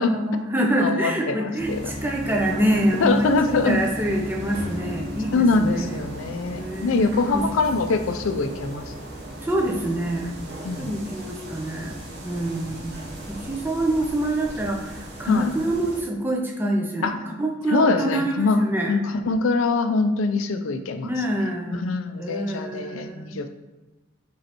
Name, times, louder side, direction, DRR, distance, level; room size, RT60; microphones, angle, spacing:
voice 1, 0.0-6.0 6.6-7.0 7.3-7.5 9.4-10.4 10.8-12.9 13.3-19.0 21.0-21.8 22.2-23.4, right 1 dB, 10° right, 0 dB, 0.5 m, -26 dB
voice 2, 0.6-1.8 3.0-3.8 5.3-8.8 10.6-11.0 15.3-15.5 17.0-17.1 17.7-18.6 18.9-21.1 21.7-23.6, left 3 dB, 70° left, 8 dB, 0.4 m, -23 dB
sound 1, 1.6-16.0, equal, 55° right, 1.0 m, -36 dB
5.1 x 3.1 x 2.9 m, 1.1 s
head